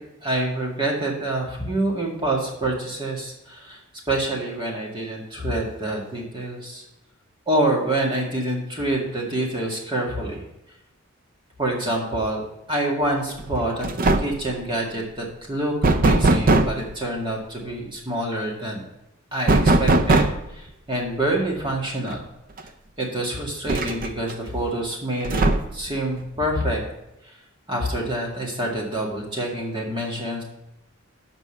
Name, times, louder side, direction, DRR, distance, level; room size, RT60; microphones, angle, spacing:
voice 1, 0.2-3.8 4.1-6.8 7.5-10.4 11.6-12.4 12.7-13.9 14.2-18.8 19.3-20.3 20.5-22.3 23.0-26.8 27.2-27.3 27.7-30.4, right 1 dB, 25° right, -1 dB, 2.0 m, -26 dB
break through blocked door, 13.4-13.6 13.8-14.5 15.8-16.8 19.5-20.5 22.1-22.2 22.6-22.7 23.7-24.3 25.2-25.9, right 2 dB, 40° right, 0.5 m, -19 dB
7.2 x 5.4 x 7.2 m, 0.90 s
head